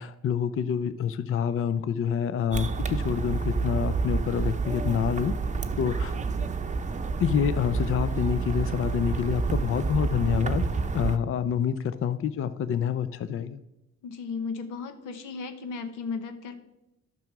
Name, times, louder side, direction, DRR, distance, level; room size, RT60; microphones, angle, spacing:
voice 1, 0.0-5.3 5.8-6.2 7.2-10.6 10.9-13.6, left 8 dB, 45° left, 13 dB, 0.5 m, -27 dB
sound 1, 2.5-11.2, right 4 dB, 25° right, 0.7 m, -29 dB
voice 2, 14.0-16.6, left 5 dB, 90° left, 8 dB, 1.1 m, -35 dB
10.5 x 6.1 x 6.0 m, 0.93 s
cardioid pair, 90°, 30 cm